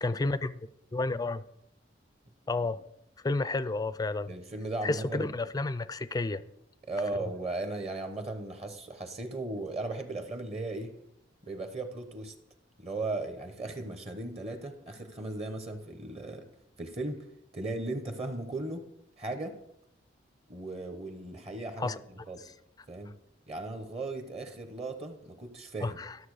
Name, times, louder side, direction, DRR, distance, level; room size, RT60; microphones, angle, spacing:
voice 1, 0.0-0.6 0.9-1.4 2.5-2.8 3.2-4.3 4.8-6.4 21.8-22.0 25.8-26.2, left 3 dB, 20° left, 0.4 m, -31 dB
voice 2, 4.3-5.4 6.9-10.9 11.4-12.3 12.8-16.4 16.8-17.2 17.5-18.9 19.2-19.6 20.5-22.4 22.9-23.1 23.5-26.0, right 2 dB, 35° right, 1.0 m, -37 dB
12.5 x 6.8 x 4.9 m
head